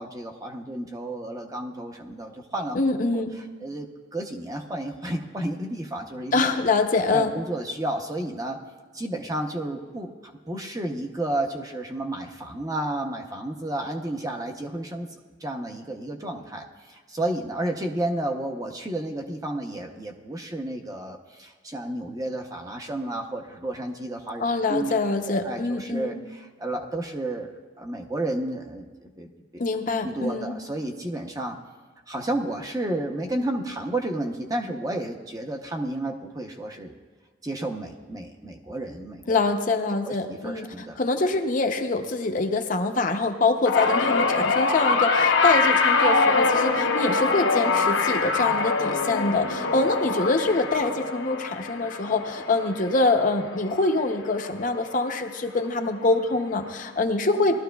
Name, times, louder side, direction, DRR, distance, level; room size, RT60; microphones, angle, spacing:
voice 1, 0.0-2.8 3.6-3.9 4.1-6.5 7.1-8.6 8.9-15.1 15.4-24.4 24.7-24.9 25.3-27.5 27.8-29.3 30.0-31.6 32.1-36.9 37.4-39.4 40.0-41.0, right 1 dB, 20° right, 3 dB, 0.7 m, -31 dB
voice 2, 2.7-3.4 6.3-7.3 24.4-26.2 29.6-30.6 39.3-57.6, left 3 dB, 45° left, 5 dB, 0.7 m, -25 dB
sound 1, 43.7-54.1 54.4-54.8 56.0-56.1, left 4 dB, 75° left, 0.9 m, -24 dB
18.5 x 12.5 x 2.3 m, 1.4 s
head